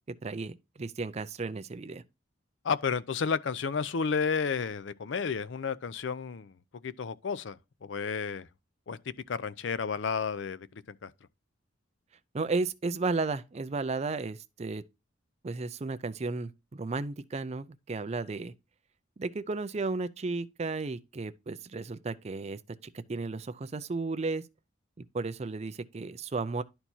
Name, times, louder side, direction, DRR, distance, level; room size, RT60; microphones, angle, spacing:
voice 1, 0.2-2.0 12.3-14.8 15.4-18.5 19.2-22.6 22.9-24.5 25.1-26.6, right 3 dB, 35° right, 0.4 m, -34 dB
voice 2, 2.6-6.5 6.8-8.5 8.9-11.1, left 5 dB, 65° left, 0.5 m, -32 dB
11.0 x 4.5 x 2.7 m
head